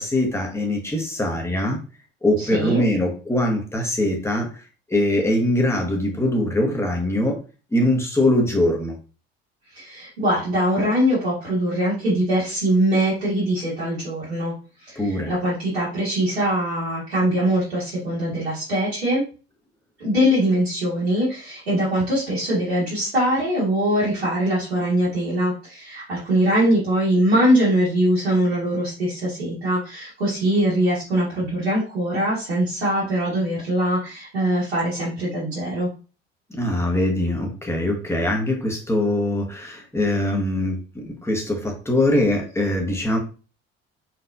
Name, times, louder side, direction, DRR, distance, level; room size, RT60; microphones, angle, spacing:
voice 1, 0.0-1.8 2.2-4.5 4.9-7.4 7.7-8.9 14.9-15.3 36.5-43.2, left 1 dB, 10° left, 1 dB, 1.6 m, -22 dB
voice 2, 2.4-2.9 9.7-14.5 14.8-19.2 20.0-35.9, right 1 dB, 80° right, -8 dB, 1.9 m, -22 dB
4.4 x 4.1 x 2.7 m, 0.34 s
figure-of-eight pair, 55°, 31 cm